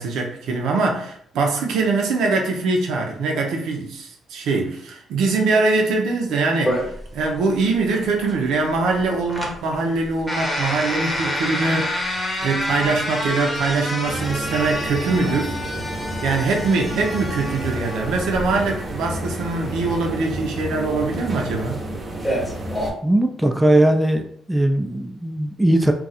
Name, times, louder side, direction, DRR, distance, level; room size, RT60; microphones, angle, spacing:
voice 1, 0.0-6.9 7.1-15.6 16.2-21.8, right 3 dB, 80° right, 1 dB, 0.7 m, -23 dB
sound 1, 6.7-22.9, left 1 dB, 15° left, 0.8 m, -29 dB
sound 2, 14.0-22.9, right 1 dB, 40° right, 0.8 m, -31 dB
voice 2, 23.0-24.2 24.5-25.9, right 1 dB, 10° right, 4 dB, 0.4 m, -18 dB
2.5 x 2.3 x 4.1 m, 0.65 s
cardioid pair, 90°, 0 cm